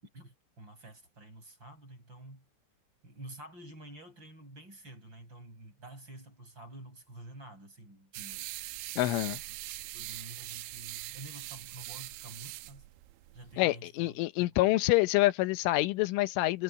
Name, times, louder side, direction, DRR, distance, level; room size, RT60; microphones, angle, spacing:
voice 1, 0.0-2.5 3.0-8.5 9.1-12.9 13.3-14.8, right 1 dB, 25° right, 7.6 m, -50 dB
sound 1, 8.1-13.6, right 17 dB, 85° right, 3.2 m, -42 dB
voice 2, 9.0-9.4 13.6-16.6, left 18 dB, 90° left, 3.5 m, -27 dB
omnidirectional pair, 5.5 m